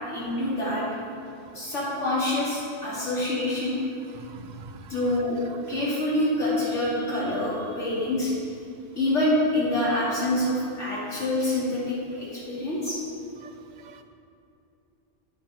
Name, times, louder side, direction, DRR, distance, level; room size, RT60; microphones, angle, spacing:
voice 1, 0.1-0.8 1.5-3.7 4.9-5.4 5.7-8.3 8.9-13.0, left 1 dB, 85° left, -8 dB, 3.0 m, -26 dB
voice 2, 4.3-4.8 13.4-13.5 13.8-14.0, right 5 dB, 55° right, 8 dB, 0.5 m, -44 dB
8.4 x 7.7 x 5.0 m, 2.6 s
omnidirectional pair, 1.2 m